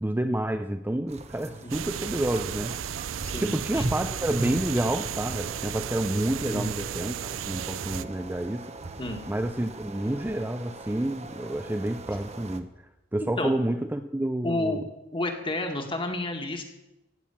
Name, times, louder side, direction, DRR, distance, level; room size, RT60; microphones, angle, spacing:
voice 1, 0.0-2.7 3.4-8.7 9.3-14.8, right 1 dB, 10° right, 7 dB, 0.5 m, -29 dB
sound 1, 1.1-12.6, right 2 dB, 35° right, 1.0 m, -39 dB
sound 2, 1.7-8.0, right 9 dB, 85° right, 0.5 m, -34 dB
voice 2, 3.2-3.8 6.5-6.7 9.0-9.2 13.4-13.5 14.4-14.8 15.1-16.6, left 2 dB, 25° left, 4 dB, 1.9 m, -30 dB
16.0 x 9.0 x 7.2 m, 0.95 s
head